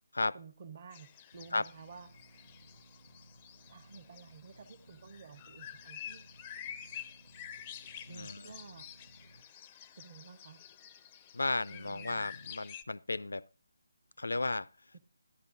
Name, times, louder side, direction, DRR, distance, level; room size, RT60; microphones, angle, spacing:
voice 1, 0.3-2.1 3.7-6.2 6.6-6.7 8.1-8.9 10.0-10.6 11.7-12.3 14.9-15.0, right 5 dB, 40° right, 1.0 m, -52 dB
sound 1, 0.9-12.8, left 9 dB, 20° left, 0.4 m, -49 dB
sound 2, 1.3-9.4, right 1 dB, 90° right, 1.1 m, -60 dB
voice 2, 8.1-8.5 11.3-13.4 14.2-14.7, left 2 dB, 90° left, 0.4 m, -34 dB
12.0 x 10.5 x 2.6 m
figure-of-eight pair, 165°, 0 cm